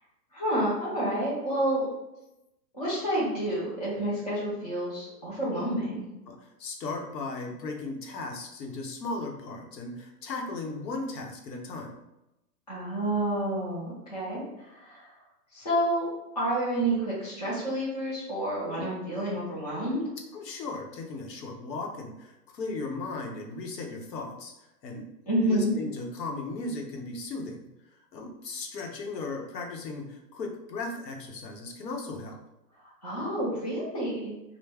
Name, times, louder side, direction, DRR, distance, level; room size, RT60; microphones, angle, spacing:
voice 1, 0.3-1.9 2.7-6.1 12.7-15.1 15.5-16.1 16.4-20.0 25.3-25.7 32.8-34.3, right 1 dB, 25° left, -8 dB, 0.4 m, -29 dB
voice 2, 6.3-12.0 20.3-24.5 24.8-25.1 25.4-32.4, left 3 dB, 85° left, 2 dB, 0.8 m, -37 dB
2.2 x 2.0 x 3.3 m, 0.92 s
hypercardioid pair, 175°, 48 cm